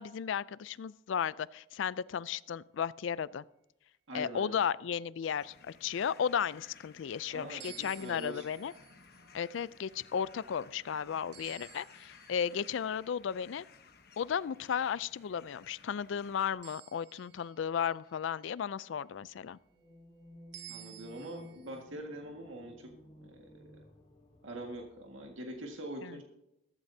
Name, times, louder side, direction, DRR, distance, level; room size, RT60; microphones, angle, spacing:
voice 1, 0.0-3.4 4.1-8.7 9.3-13.7 14.2-19.6 26.0-26.2, left 7 dB, 70° left, 19 dB, 0.4 m, -34 dB
voice 2, 4.1-4.5 7.3-8.5 20.7-22.9 23.2-23.7 24.4-26.2, right 1 dB, 80° right, 1 dB, 1.8 m, -44 dB
sound 1, 5.3-16.5, left 6 dB, 50° left, 1.0 m, -58 dB
sound 2, 7.6-13.1 16.6-18.7 20.5-21.8, right 13 dB, 60° right, 0.9 m, -55 dB
sound 3, 19.7-25.7, left 1 dB, 30° left, 2.9 m, -56 dB
14.5 x 14.5 x 2.7 m, 0.85 s
head